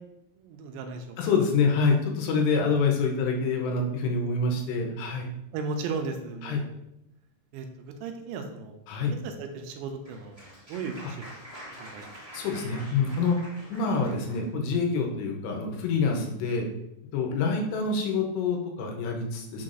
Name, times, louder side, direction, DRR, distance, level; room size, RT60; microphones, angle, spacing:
voice 1, 0.4-1.2 5.5-6.7 7.5-8.7 9.1-11.3 11.8-12.1, right 4 dB, 85° right, 5 dB, 2.9 m, -36 dB
voice 2, 1.2-5.3 6.4-6.6 8.9-9.1 12.3-13.4 13.7-16.7 17.1-19.6, left 4 dB, 80° left, 1 dB, 2.9 m, -26 dB
Applause, 9.6-14.5, equal, 20° right, 0.9 m, -46 dB
6.8 x 5.8 x 2.6 m, 0.82 s
omnidirectional pair, 5.1 m